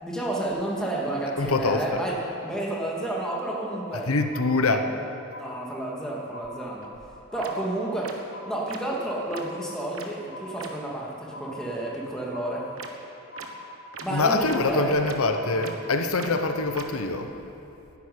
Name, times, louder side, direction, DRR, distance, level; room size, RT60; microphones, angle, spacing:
voice 1, 0.0-4.1 5.4-6.9 7.3-12.7 14.0-15.0, right 1 dB, 5° left, -4 dB, 2.5 m, -31 dB
voice 2, 1.4-2.0 4.1-4.9 14.1-17.3, left 3 dB, 85° left, 7 dB, 1.0 m, -24 dB
sound 1, 2.7-3.0 3.3-4.0 4.3-5.0 5.3-6.0 6.3-7.0 7.3-8.0 8.3-9.0 9.3-10.0 10.3-11.0 11.3-12.0 12.3-13.0 13.3-14.0 14.3-15.0 15.3-16.0 16.3-17.0, left 2 dB, 35° left, 3.0 m, -44 dB
sound 2, 6.8-6.9 7.4-7.5 8.0-8.1 8.7-8.8 9.3-9.4 9.9-10.1 10.6-10.7 12.8-12.9 13.4-13.5 13.9-14.0 14.5-14.6 15.0-15.2 15.6-15.7 16.2-16.3 16.7-16.8, right 6 dB, 70° right, 1.4 m, -39 dB
12.0 x 11.0 x 9.7 m, 2.8 s
head